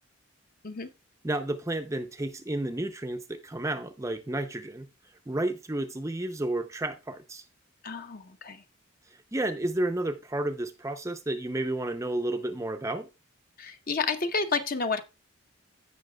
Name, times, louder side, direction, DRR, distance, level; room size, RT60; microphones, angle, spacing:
voice 1, 1.2-4.9 5.3-7.4 9.3-13.1, right 1 dB, 15° right, 0.5 m, -31 dB
voice 2, 7.8-8.6 13.6-15.0, left 4 dB, 45° left, 0.8 m, -30 dB
15.5 x 5.7 x 2.2 m
head